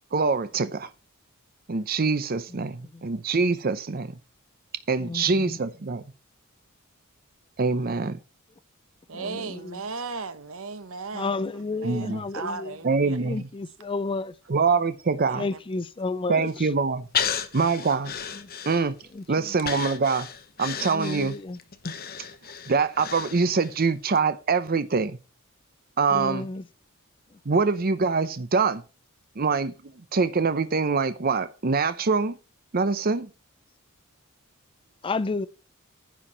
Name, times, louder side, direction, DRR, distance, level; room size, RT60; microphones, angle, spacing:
voice 1, 0.1-0.9 1.7-4.1 4.9-6.0 7.6-8.2 11.8-12.2 12.8-13.4 14.5-15.4 16.3-17.0 17.5-18.1 18.7-19.0 19.3-20.3 20.6-21.4 22.7-25.2 26.0-26.5 27.5-28.8 29.4-29.7 30.1-32.3 32.7-33.3, right 4 dB, 45° right, 0.7 m, -24 dB
voice 2, 5.0-5.6 7.7-7.8 9.1-9.8 11.1-12.8 13.2-14.3 15.3-16.7 18.3-18.5 19.1-19.5 20.8-21.6 26.1-26.7 35.0-35.5, left 3 dB, 25° left, 0.4 m, -32 dB
voice 3, 9.1-13.2 15.3-15.6, right 4 dB, 70° right, 1.0 m, -36 dB
Breathing, 17.1-19.1 19.6-23.8 24.2-24.3, left 7 dB, 45° left, 1.1 m, -33 dB
10.0 x 4.7 x 7.2 m
head